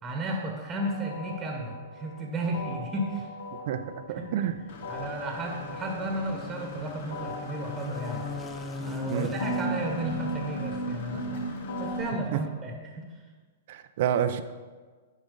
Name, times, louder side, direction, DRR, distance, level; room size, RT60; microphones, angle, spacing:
voice 1, 0.0-3.3 4.2-4.3 4.9-8.3 8.8-11.4 11.8-13.2, right 1 dB, 15° right, 1 dB, 1.2 m, -33 dB
sound 1, 0.8-2.2 2.5-4.5 4.8-6.8 7.1-9.1 9.4-12.2, equal, 80° left, 1.6 m, -37 dB
voice 2, 3.7-4.5 9.1-9.3 12.3-12.4 13.7-14.4, right 10 dB, 55° right, 11 dB, 0.5 m, -28 dB
sound 2, 3.8-11.4, left 4 dB, 15° left, 0.5 m, -41 dB
Engine / Mechanisms, 4.7-12.0, left 4 dB, 60° left, 1.0 m, -46 dB
8.9 x 5.0 x 3.9 m, 1.4 s
hypercardioid pair, 125°, 0 cm